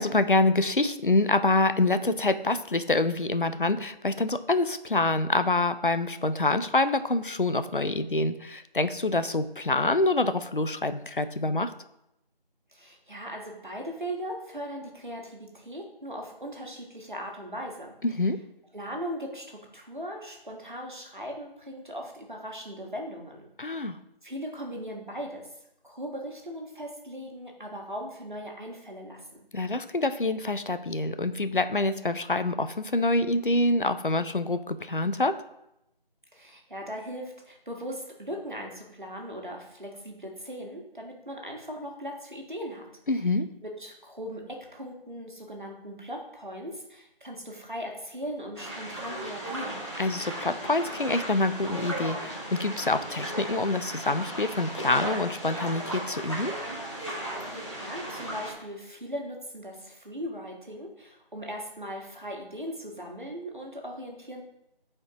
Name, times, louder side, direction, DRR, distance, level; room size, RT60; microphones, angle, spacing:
voice 1, 0.0-11.7 18.0-18.4 23.6-24.0 29.5-35.4 43.1-43.5 50.0-56.5, left 2 dB, 60° left, 11 dB, 0.5 m, -26 dB
voice 2, 12.7-17.9 18.7-23.9 24.2-25.4 25.8-29.4 36.3-42.8 43.6-49.8 57.5-64.4, equal, 55° right, 1 dB, 1.5 m, -39 dB
sound 1, 48.5-58.5, right 1 dB, 30° left, 1.4 m, -36 dB
8.4 x 4.4 x 2.9 m, 0.84 s
figure-of-eight pair, 180°, 30 cm